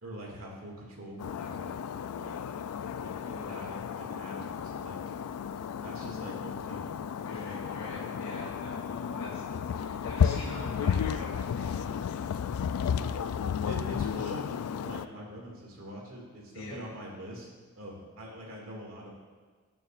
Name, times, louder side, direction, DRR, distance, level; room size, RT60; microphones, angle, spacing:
voice 1, 0.0-2.4 2.9-5.0 5.8-6.9 7.3-7.6 13.0-13.2 13.7-14.5 14.8-17.5 17.8-19.1, equal, 65° right, -2 dB, 2.2 m, -44 dB
sound 1, 1.2-15.1, left 7 dB, 90° left, 0.3 m, -33 dB
voice 2, 3.2-3.6 7.2-11.9 16.5-16.8, left 1 dB, 60° left, -8 dB, 2.0 m, -44 dB
18.5 x 6.9 x 2.5 m, 1.5 s
head